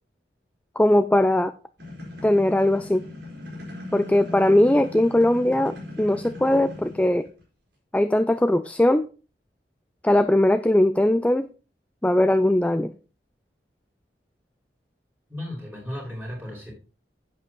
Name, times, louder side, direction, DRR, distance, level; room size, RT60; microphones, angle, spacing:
voice 1, 0.8-1.5 2.2-3.0 3.9-7.3 7.9-9.1 10.0-11.5 12.0-12.9, left 1 dB, 10° left, 11 dB, 0.3 m, -20 dB
sound 1, 1.8-7.4, left 2 dB, 80° right, 4.6 m, -39 dB
voice 2, 15.3-16.7, left 1 dB, 10° right, -2 dB, 5.0 m, -35 dB
10.5 x 8.3 x 3.1 m, 0.35 s
head